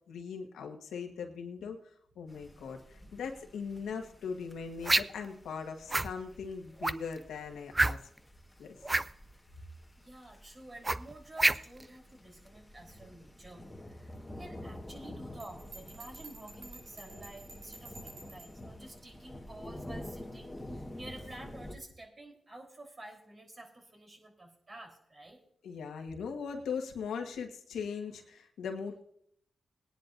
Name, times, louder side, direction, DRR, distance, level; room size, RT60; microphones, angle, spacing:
voice 1, 0.1-1.8 2.1-8.0 8.6-8.8 25.6-29.0, left 6 dB, 90° left, 3 dB, 1.5 m, -39 dB
sound 1, 2.3-21.8, left 1 dB, 15° left, 1.5 m, -49 dB
sound 2, 4.8-5.3 5.9-6.1 6.8-7.1 7.7-8.2 8.8-9.1 10.8-11.8, right 2 dB, 20° right, 0.4 m, -27 dB
voice 2, 10.0-25.4, right 1 dB, 40° right, 1 dB, 3.8 m, -50 dB
Bell, 15.4-18.6, right 3 dB, 80° right, 4.0 m, -51 dB
21.0 x 10.5 x 2.6 m, 0.68 s
cardioid pair, 65°, 0 cm